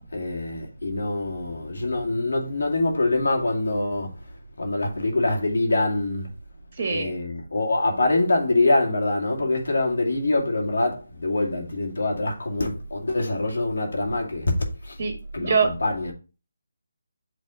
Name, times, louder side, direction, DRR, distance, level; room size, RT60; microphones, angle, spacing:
voice 1, 0.1-6.3 6.9-15.0 15.3-16.1, left 2 dB, 75° left, 2.2 m, -25 dB
voice 2, 6.8-7.2 15.0-15.1 15.4-15.7, right 5 dB, 40° right, 1.6 m, -23 dB
8.5 x 3.4 x 3.7 m
figure-of-eight pair, 160°, 0 cm